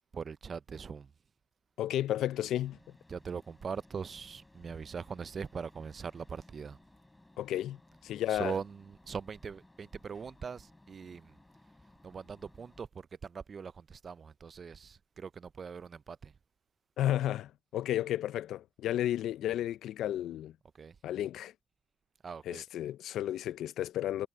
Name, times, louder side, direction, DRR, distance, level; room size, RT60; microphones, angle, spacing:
voice 1, 0.1-1.1 3.1-6.8 8.3-11.4 12.0-16.3 20.7-21.0 22.2-22.6, right 6 dB, 45° right, 0.4 m, -41 dB
voice 2, 1.8-2.8 7.4-7.8 8.0-8.5 17.0-20.5 21.0-21.5 22.5-24.3, left 12 dB, 80° left, 0.4 m, -32 dB
sound 1, 2.2-12.8, left 1 dB, 10° left, 6.9 m, -61 dB
cardioid pair, 90°, 0 cm